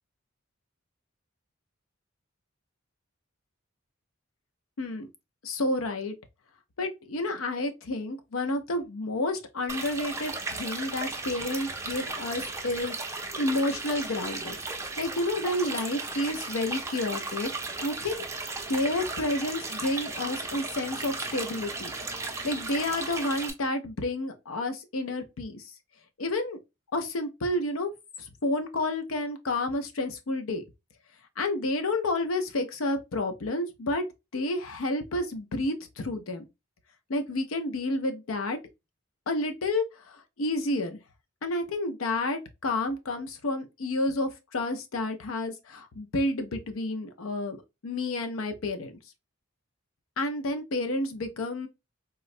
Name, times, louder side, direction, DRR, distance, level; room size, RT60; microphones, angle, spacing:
voice 1, 5.4-6.1 6.8-14.6 15.0-17.5 17.8-18.2 18.7-21.9 22.2-25.6 26.2-26.6 26.9-27.9 28.2-30.6 31.4-34.0 34.3-36.4 37.1-38.6 39.3-41.0 41.4-48.9 50.2-51.7, left 2 dB, 80° left, 0.6 m, -30 dB
sound 1, 9.7-23.5, right 3 dB, 15° right, 0.5 m, -35 dB
3.7 x 2.1 x 2.5 m
head